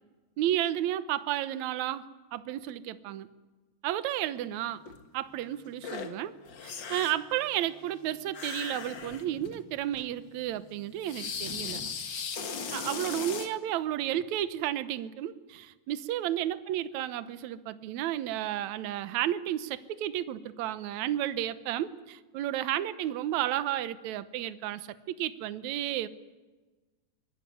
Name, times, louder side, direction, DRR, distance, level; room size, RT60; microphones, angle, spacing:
voice 1, 0.4-2.1 2.3-3.3 3.8-4.8 5.1-6.4 6.6-11.8 12.7-26.1, right 12 dB, 65° right, 13 dB, 2.1 m, -32 dB
sound 1, 4.9-5.0 5.8-6.1 6.4-7.3 8.3-9.6 9.9-10.1 11.0-13.5, left 6 dB, 45° left, 1.8 m, -37 dB
24.0 x 20.5 x 9.4 m, 1.2 s
omnidirectional pair, 4.0 m